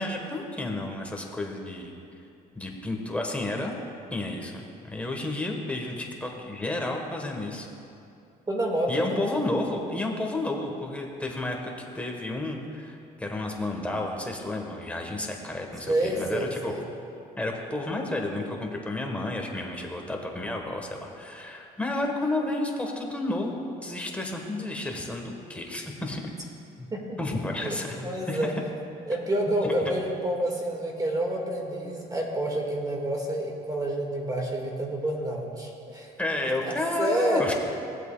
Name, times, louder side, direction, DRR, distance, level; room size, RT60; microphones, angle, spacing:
voice 1, 0.0-1.9 2.5-3.8 4.1-7.7 8.9-16.7 17.4-26.3 26.8-26.9 27.2-28.5 29.6-29.7 36.2-37.5, left 2 dB, 10° left, 1 dB, 1.2 m, -31 dB
voice 2, 8.5-9.2 15.9-16.8 26.9-27.2 27.6-27.8 28.0-28.5 29.1-36.1 36.6-36.7 37.0-37.4, right 1 dB, 20° right, -1 dB, 1.8 m, -28 dB
17.0 x 8.0 x 2.3 m, 2.6 s
cardioid pair, 110°, 17 cm